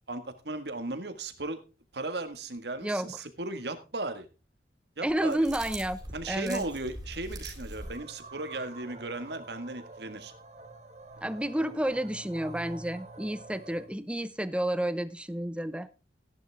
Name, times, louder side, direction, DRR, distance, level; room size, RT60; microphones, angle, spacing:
voice 1, 0.1-1.6 1.9-4.3 5.0-5.4 6.1-10.3, right 2 dB, 70° right, 9 dB, 1.7 m, -36 dB
voice 2, 2.8-3.2 5.0-6.0 6.3-6.6 11.2-15.9, right 1 dB, 5° right, 14 dB, 0.7 m, -30 dB
sound 1, 5.1-8.0, right 1 dB, 20° right, 3.9 m, -42 dB
sound 2, 7.8-13.9, right 2 dB, 40° right, 1.9 m, -47 dB
14.5 x 10.5 x 3.5 m, 0.31 s
head